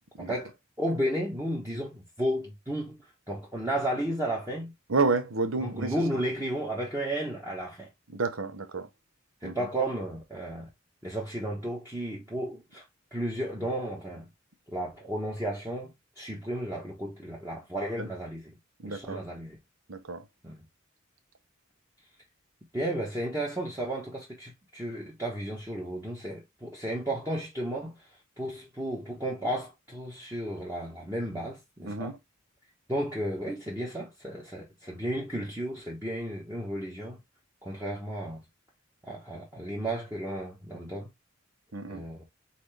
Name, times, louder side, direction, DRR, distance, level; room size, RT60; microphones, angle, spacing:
voice 1, 0.2-3.0 3.3-4.7 5.6-7.9 9.4-10.7 11.0-12.8 13.1-14.3 14.7-18.5 18.9-19.6 20.4-20.6 22.7-28.0 28.4-32.1 32.9-37.2 37.6-38.4 39.0-41.1 41.9-42.3, right 1 dB, 15° right, 1.1 m, -33 dB
voice 2, 4.9-5.9 8.1-8.9 9.4-9.6 18.0-18.1 18.8-19.2 19.9-20.2 31.8-32.2 41.7-42.0, right 3 dB, 85° right, 1.0 m, -30 dB
4.2 x 3.9 x 3.3 m
head